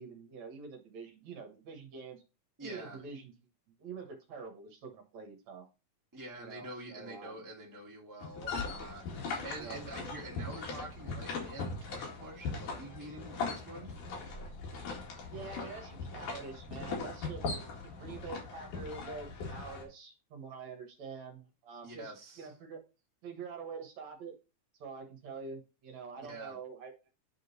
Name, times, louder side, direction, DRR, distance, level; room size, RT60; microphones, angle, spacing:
voice 1, 0.0-2.2 2.6-3.3 3.8-5.7 6.4-7.4 9.5-9.8 15.3-22.8 23.2-24.3 24.8-26.9, right 5 dB, 65° right, 2.4 m, -46 dB
voice 2, 2.6-3.0 6.1-13.9 21.8-22.5 26.2-26.6, right 2 dB, 5° right, 1.6 m, -46 dB
sound 1, 8.2-19.8, left 4 dB, 75° left, 3.5 m, -40 dB
8.8 x 3.8 x 4.0 m
omnidirectional pair, 3.7 m